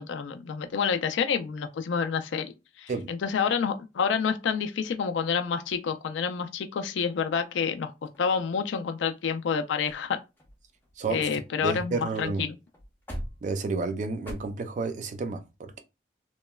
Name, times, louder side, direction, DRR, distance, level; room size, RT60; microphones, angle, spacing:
voice 1, 0.0-2.5 2.8-7.9 8.2-10.2 11.1-12.6, left 6 dB, 80° left, 0.4 m, -28 dB
sound 1, 8.0-8.9 9.5-9.6 9.8-10.1 10.4-11.9 12.2-12.3 12.7-14.3, equal, 10° left, 0.5 m, -43 dB
voice 2, 11.0-12.5 13.4-15.8, right 3 dB, 40° right, 0.3 m, -31 dB
2.9 x 2.1 x 2.2 m
head